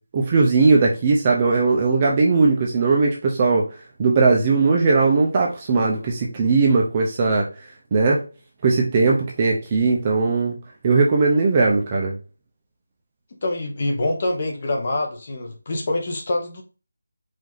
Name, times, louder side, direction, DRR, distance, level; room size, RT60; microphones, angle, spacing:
voice 1, 0.1-3.7 4.0-7.5 7.9-8.2 8.6-10.6 10.8-12.2, right 4 dB, 15° right, 0.6 m, -18 dB
voice 2, 13.4-16.6, left 2 dB, 25° left, 0.9 m, -25 dB
5.0 x 2.7 x 3.8 m
figure-of-eight pair, 175°, 0 cm